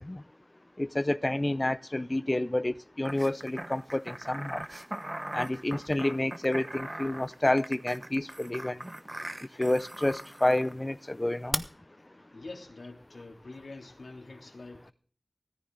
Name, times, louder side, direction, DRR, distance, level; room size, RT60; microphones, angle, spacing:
voice 1, 0.8-4.6 5.3-8.8 9.6-11.6, left 1 dB, 30° left, 0.6 m, -29 dB
sound 1, 3.0-10.7 11.5-11.6, right 1 dB, 30° right, 1.0 m, -39 dB
voice 2, 12.3-14.9, left 3 dB, 90° left, 2.8 m, -45 dB
17.5 x 14.0 x 3.9 m
wide cardioid pair, 60°, 0 cm